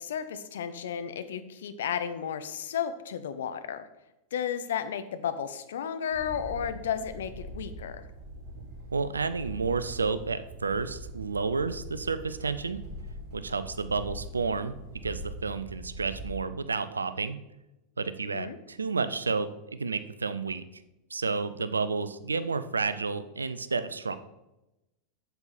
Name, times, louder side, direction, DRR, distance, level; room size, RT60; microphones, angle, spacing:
voice 1, 0.0-3.9 4.3-8.1 18.3-18.6, left 8 dB, 65° left, 11 dB, 0.7 m, -33 dB
sound 1, 6.1-16.3, right 1 dB, 40° right, 2.7 m, -43 dB
voice 2, 8.9-12.8 13.3-14.8 15.0-17.4 18.0-20.6 21.1-24.2, right 4 dB, 80° right, 13 dB, 0.5 m, -31 dB
7.9 x 7.0 x 4.2 m, 0.95 s
figure-of-eight pair, 90°, 0 cm